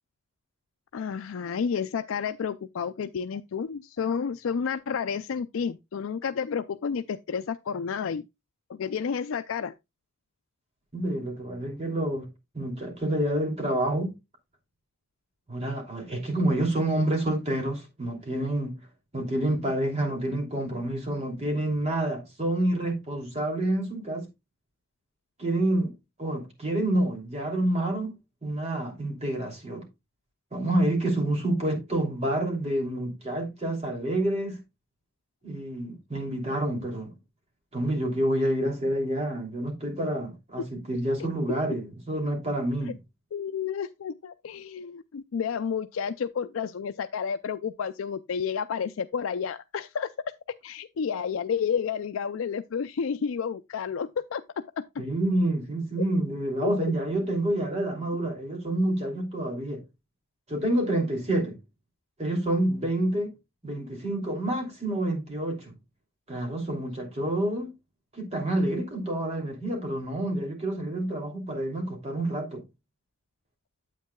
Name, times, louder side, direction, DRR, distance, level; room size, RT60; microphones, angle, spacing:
voice 1, 0.9-8.2 8.7-9.7 43.3-50.1 50.6-54.4 56.6-56.7, left 6 dB, 70° left, 0.4 m, -31 dB
voice 2, 10.9-12.3 12.5-14.1 15.5-18.8 19.1-24.3 25.4-25.9 26.2-28.1 28.4-29.9 30.5-34.6 35.4-37.1 37.7-43.0 55.0-59.8 60.5-61.6 62.2-63.3 63.6-65.7 66.3-67.7 68.1-72.6, right 1 dB, 30° right, 2.9 m, -28 dB
9.2 x 8.2 x 2.3 m
head